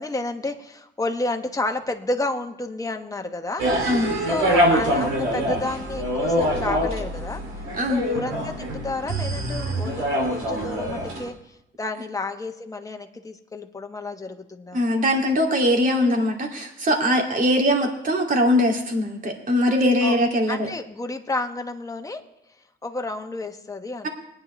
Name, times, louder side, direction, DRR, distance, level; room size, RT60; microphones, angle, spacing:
voice 1, 0.0-3.9 4.3-7.4 7.9-10.0 10.3-11.3 11.8-14.8 20.0-20.2 20.5-22.2 22.8-24.1, left 2 dB, 15° left, 4 dB, 1.2 m, -30 dB
sound 1, 3.6-11.3, equal, 85° right, 2.8 m, -25 dB
voice 2, 3.9-4.2 7.7-8.0 14.7-20.7, equal, 45° right, 1 dB, 2.6 m, -21 dB
20.5 x 9.6 x 3.3 m, 0.82 s
cardioid pair, 90°, 20 cm